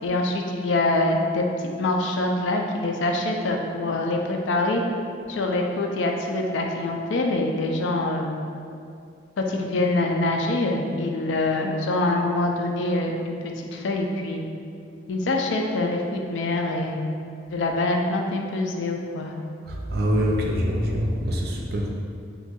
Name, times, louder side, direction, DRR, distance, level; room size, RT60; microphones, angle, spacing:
voice 1, 0.0-4.8 5.3-8.3 9.4-14.4 15.1-17.0 17.5-19.3, left 2 dB, 80° left, 2 dB, 0.4 m, -25 dB
voice 2, 19.9-21.9, equal, 55° right, 0 dB, 0.4 m, -24 dB
2.6 x 2.3 x 4.1 m, 2.4 s
head